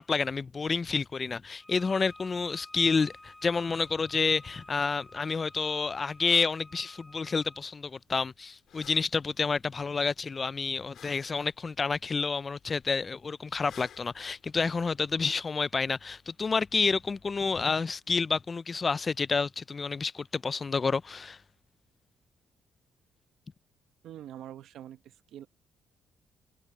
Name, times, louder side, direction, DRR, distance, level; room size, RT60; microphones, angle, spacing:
voice 1, 0.0-21.4, left 4 dB, 35° left, 0.4 m, -29 dB
Bowed string instrument, 1.6-7.6, left 1 dB, 10° left, 5.2 m, -53 dB
sound 1, 8.7-15.4, left 9 dB, 65° left, 2.5 m, -57 dB
voice 2, 24.0-25.5, right 11 dB, 80° right, 1.0 m, -45 dB
cardioid pair, 90°, 0 cm